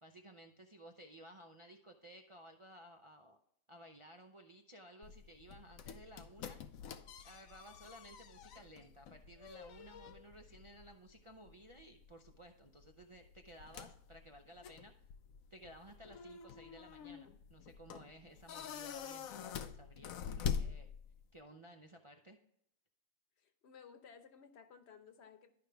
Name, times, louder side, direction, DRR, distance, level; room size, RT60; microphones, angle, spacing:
voice 1, 0.0-3.4 3.7-6.6 7.2-14.9 15.5-20.9 21.3-22.4, right 1 dB, 55° right, 3 dB, 0.3 m, -57 dB
sound 1, 5.0-21.4, left 7 dB, 75° left, 1.0 m, -46 dB
voice 2, 23.4-25.5, left 6 dB, 50° left, 8 dB, 1.1 m, -57 dB
12.0 x 5.2 x 3.4 m, 0.73 s
omnidirectional pair, 1.5 m